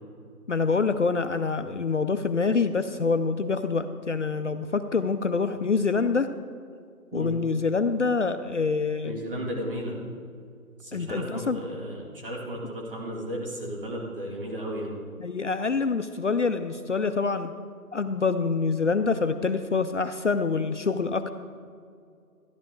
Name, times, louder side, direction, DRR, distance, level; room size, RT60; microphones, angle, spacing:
voice 1, 0.5-6.3 7.1-9.2 10.9-11.6 15.2-17.5 17.9-21.3, left 4 dB, 55° left, 9 dB, 0.5 m, -26 dB
voice 2, 9.0-10.0 10.8-15.0, equal, 35° right, -2 dB, 2.3 m, -34 dB
13.5 x 11.0 x 3.8 m, 2.3 s
figure-of-eight pair, 170°, 45 cm